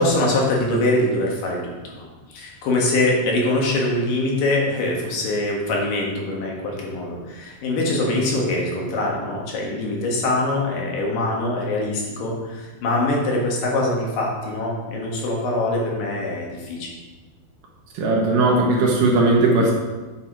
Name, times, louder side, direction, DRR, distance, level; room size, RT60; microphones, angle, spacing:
voice 1, 0.0-16.9, left 2 dB, 60° left, -2 dB, 2.7 m, -23 dB
voice 2, 17.9-19.7, right 2 dB, 60° right, -2 dB, 2.6 m, -18 dB
8.9 x 6.1 x 4.6 m, 1.2 s
omnidirectional pair, 5.2 m